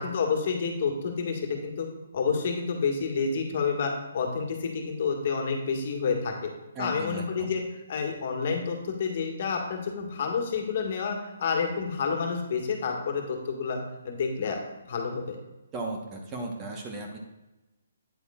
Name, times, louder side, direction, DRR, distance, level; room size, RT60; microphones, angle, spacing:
voice 1, 0.0-1.9 2.1-6.5 6.8-7.6 7.9-13.8 14.0-14.6 14.9-15.3, left 5 dB, 50° left, 2 dB, 1.7 m, -29 dB
voice 2, 6.7-7.6 15.7-17.2, right 2 dB, 20° right, 1 dB, 1.1 m, -36 dB
9.0 x 8.1 x 2.4 m, 1.0 s
hypercardioid pair, 155°, 0 cm